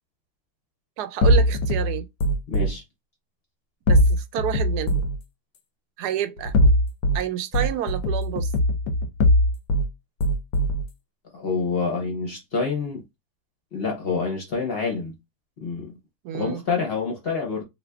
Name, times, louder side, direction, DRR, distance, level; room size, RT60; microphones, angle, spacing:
voice 1, 1.0-2.1 3.9-5.1 6.0-6.5 7.1-8.5 16.2-16.6, right 11 dB, 85° right, 1.1 m, -29 dB
sound 1, 1.2-2.7 3.9-5.2 6.4-7.2 7.5-9.9 10.2-10.9, equal, 75° left, 1.1 m, -20 dB
voice 2, 2.5-2.8 11.3-13.0 13.7-15.1 15.6-15.9 16.3-17.6, left 4 dB, 45° left, 1.0 m, -27 dB
2.6 x 2.6 x 3.4 m
omnidirectional pair, 1.7 m